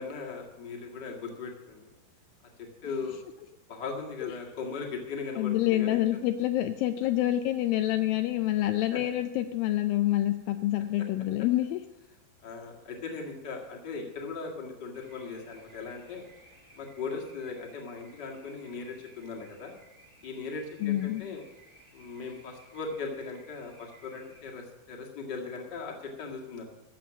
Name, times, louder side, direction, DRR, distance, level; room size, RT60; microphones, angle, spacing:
voice 1, 0.0-1.9 2.6-3.2 3.7-6.0 8.9-9.0 12.4-16.2 16.8-19.7 20.2-21.4 21.9-26.7, left 4 dB, 35° left, 1 dB, 1.9 m, -38 dB
voice 2, 5.4-11.8 20.8-21.2, left 14 dB, 80° left, 8 dB, 2.2 m, -27 dB
sound 1, 14.9-24.4, right 1 dB, 10° right, 1.9 m, -58 dB
13.5 x 7.7 x 7.2 m, 1.0 s
omnidirectional pair, 4.3 m